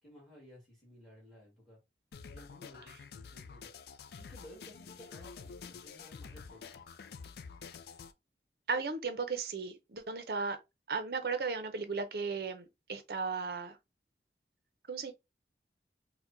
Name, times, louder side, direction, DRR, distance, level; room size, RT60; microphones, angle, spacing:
voice 1, 0.0-1.8 2.3-6.8, equal, ahead, 1.6 m, -56 dB
sound 1, 2.1-8.1, left 5 dB, 60° left, 0.3 m, -49 dB
voice 2, 8.7-10.6 10.9-13.8 14.9-15.1, right 4 dB, 55° right, 0.5 m, -35 dB
4.5 x 2.1 x 2.5 m
head